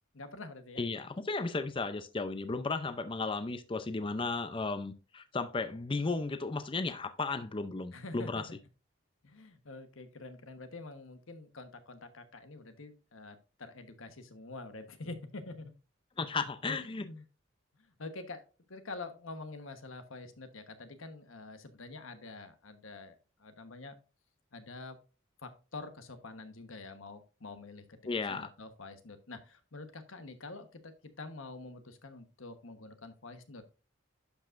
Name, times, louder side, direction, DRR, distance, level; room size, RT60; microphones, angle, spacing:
voice 1, 0.1-0.8 7.9-8.6 9.2-15.7 16.7-17.2 17.8-18.4 18.7-23.1 23.4-23.9 24.5-25.0 25.4-28.0 28.3-33.6, left 3 dB, 90° left, 1.2 m, -46 dB
voice 2, 0.8-8.4 16.2-17.0 28.1-28.5, left 3 dB, 25° left, 0.5 m, -34 dB
11.5 x 5.2 x 2.5 m
head